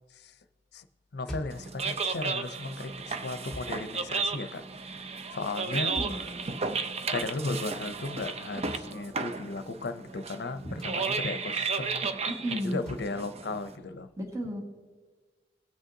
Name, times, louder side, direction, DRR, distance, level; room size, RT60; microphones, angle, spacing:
voice 1, 1.1-4.6 5.3-5.9 7.1-12.1 12.6-14.1, left 3 dB, 65° left, 11 dB, 0.6 m, -35 dB
sound 1, 1.3-1.7 3.5-3.8 5.9-6.3 8.6-8.9 10.8-11.0 12.8-13.1, left 1 dB, 5° left, 2.0 m, -41 dB
sound 2, 1.5-13.7, right 4 dB, 35° right, 0.5 m, -34 dB
voice 2, 5.9-6.5 10.6-10.8 12.2-12.9 14.2-14.6, equal, 20° right, -2 dB, 1.7 m, -34 dB
18.5 x 6.4 x 2.7 m, 1.4 s
head